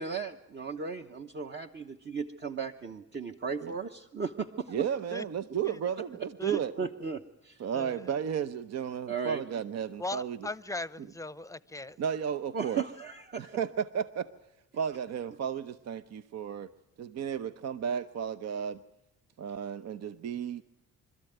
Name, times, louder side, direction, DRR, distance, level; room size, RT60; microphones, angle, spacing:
voice 1, 0.0-4.8 6.5-7.6 9.1-9.4 12.5-13.5, right 5 dB, 35° right, 1.1 m, -36 dB
voice 2, 4.7-6.7 7.6-10.4 12.0-12.8 13.4-14.3 14.8-16.7 17.0-18.8 19.4-20.6, right 8 dB, 60° right, 0.8 m, -33 dB
voice 3, 7.7-8.1 10.0-12.0, left 2 dB, 10° left, 0.8 m, -38 dB
25.5 x 13.5 x 9.1 m
cardioid pair, 90°, 30 cm